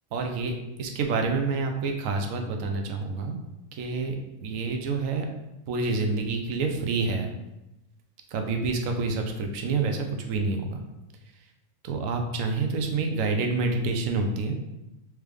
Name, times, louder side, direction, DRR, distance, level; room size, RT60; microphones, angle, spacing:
voice 1, 0.1-3.4 3.7-4.2 4.4-5.3 5.7-7.3 8.3-10.8 11.8-14.6, right 3 dB, 80° right, 4 dB, 1.0 m, -28 dB
3.3 x 3.2 x 3.3 m, 0.93 s
omnidirectional pair, 1.4 m